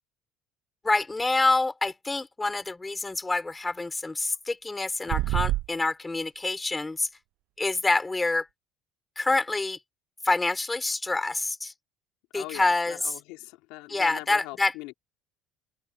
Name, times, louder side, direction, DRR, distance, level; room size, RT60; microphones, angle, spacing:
voice 1, 0.8-7.1 7.6-8.5 9.2-9.8 10.2-11.7 12.3-13.1 13.9-14.7, left 3 dB, 15° left, 4.2 m, -27 dB
sound 1, 5.1-5.7, right 17 dB, 65° right, 0.4 m, -26 dB
voice 2, 12.3-14.9, left 22 dB, 75° left, 3.6 m, -41 dB
supercardioid pair, 95°, 0 cm